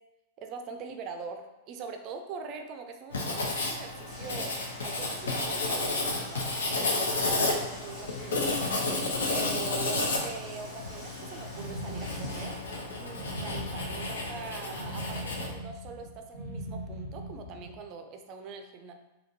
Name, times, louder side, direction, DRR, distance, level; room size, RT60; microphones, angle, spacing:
voice 1, 0.4-6.5 6.9-8.7 9.3-12.6 13.0-18.9, right 5 dB, 35° right, 5 dB, 0.4 m, -42 dB
Writing, 3.1-15.5, left 2 dB, 65° left, 0.5 m, -32 dB
sound 1, 4.1-12.5, equal, 10° left, 1.0 m, -49 dB
sound 2, 11.5-17.8, equal, 45° left, 1.2 m, -40 dB
3.5 x 2.2 x 2.7 m, 1.0 s
figure-of-eight pair, 95°, 0 cm